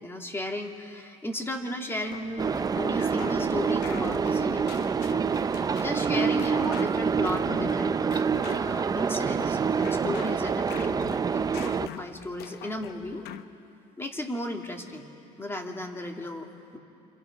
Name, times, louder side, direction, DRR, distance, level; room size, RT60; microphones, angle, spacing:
voice 1, 0.0-4.8 5.8-8.0 8.5-11.0 11.3-13.2 14.0-15.1 15.4-16.8, left 1 dB, 15° left, 3 dB, 2.2 m, -35 dB
sound 1, 2.1-13.4, left 11 dB, 75° left, 0.8 m, -44 dB
sound 2, 2.4-11.9, right 6 dB, 20° right, 0.5 m, -26 dB
29.5 x 26.0 x 5.8 m, 2.7 s
cardioid pair, 125°, 17 cm